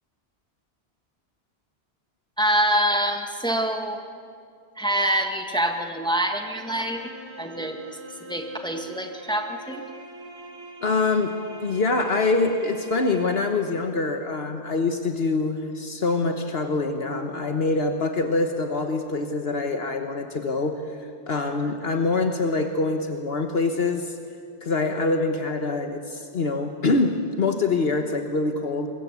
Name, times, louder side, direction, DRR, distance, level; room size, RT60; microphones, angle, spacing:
voice 1, 2.4-4.0 4.8-7.0 7.4-7.8 8.3-9.9, right 1 dB, 5° left, 4 dB, 1.8 m, -25 dB
sound 1, 6.5-13.8, right 1 dB, 75° right, 4.0 m, -43 dB
voice 2, 10.8-11.3 11.6-20.8 21.3-24.2 24.6-28.9, left 3 dB, 65° left, 5 dB, 1.5 m, -25 dB
24.5 x 22.0 x 8.3 m, 2.4 s
omnidirectional pair, 1.1 m